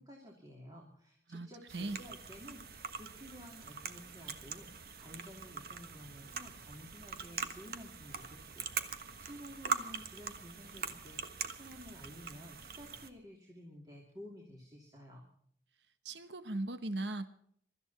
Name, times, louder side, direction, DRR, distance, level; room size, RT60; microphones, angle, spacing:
voice 1, 0.0-15.3, equal, 20° right, -1 dB, 3.0 m, -52 dB
sound 1, 1.7-13.1, right 5 dB, 55° right, 1.4 m, -43 dB
voice 2, 16.0-17.3, right 2 dB, 80° right, 11 dB, 1.1 m, -38 dB
23.5 x 13.5 x 4.3 m, 0.64 s
head